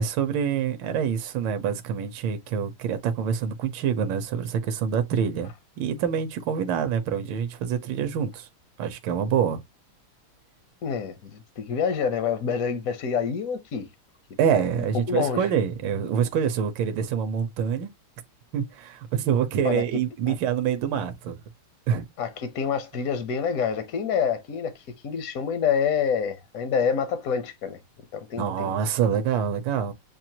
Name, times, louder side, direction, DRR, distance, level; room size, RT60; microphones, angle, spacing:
voice 1, 0.0-5.5 5.8-8.5 8.8-9.6 14.4-17.9 18.5-21.4 21.9-22.1 28.4-29.9, right 8 dB, 70° right, 1.4 m, -26 dB
voice 2, 10.8-13.9 14.5-15.5 19.6-19.8 20.3-20.4 22.2-27.8 28.1-28.7, left 7 dB, 60° left, 0.9 m, -27 dB
7.4 x 2.5 x 2.8 m
omnidirectional pair, 2.4 m